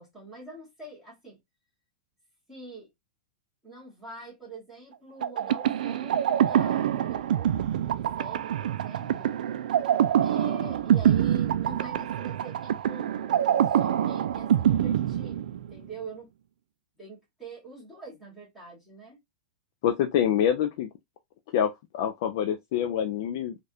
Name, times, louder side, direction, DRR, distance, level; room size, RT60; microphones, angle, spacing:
voice 1, 0.0-1.4 2.5-2.9 3.6-9.3 10.2-16.3 17.0-19.2, right 3 dB, 5° right, 1.4 m, -44 dB
sound 1, 5.2-15.9, right 10 dB, 80° right, 0.4 m, -25 dB
voice 2, 19.8-20.9 21.5-23.6, left 9 dB, 40° left, 0.4 m, -26 dB
3.3 x 2.4 x 2.6 m
supercardioid pair, 180°, 4 cm